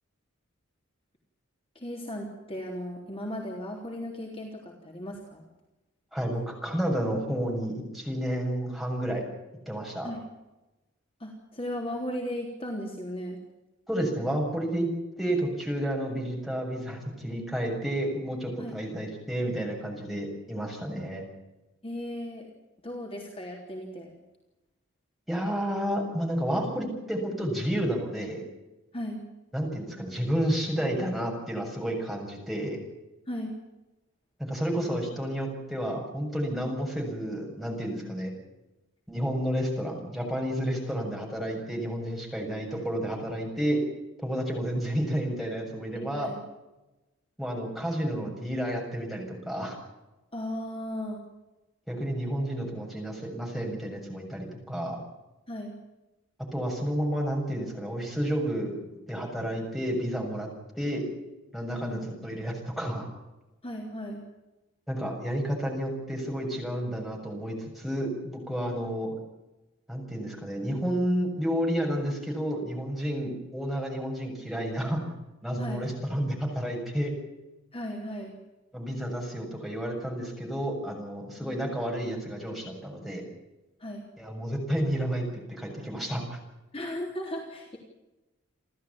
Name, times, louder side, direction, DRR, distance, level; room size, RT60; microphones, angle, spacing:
voice 1, 1.8-5.5 10.0-10.2 11.2-13.4 18.6-18.8 21.8-22.5 22.8-24.1 28.9-29.2 33.3-33.5 45.9-46.4 50.3-51.2 55.5-55.7 61.8-62.0 63.6-64.2 75.6-75.9 77.7-78.4 81.3-81.6 83.8-84.1 86.7-87.8, equal, 30° left, 1 dB, 3.6 m, -36 dB
voice 2, 6.1-9.2 9.7-10.1 13.9-14.9 15.2-21.3 25.3-28.4 29.5-32.8 34.4-38.3 39.1-43.8 44.2-46.3 47.4-49.8 51.9-55.0 56.5-58.8 59.1-60.5 60.7-61.1 61.5-63.1 64.9-69.1 69.9-75.0 75.4-77.1 78.7-83.2 84.2-86.4, equal, ahead, 0 dB, 7.0 m, -31 dB
29.5 x 14.0 x 8.8 m, 1.0 s
head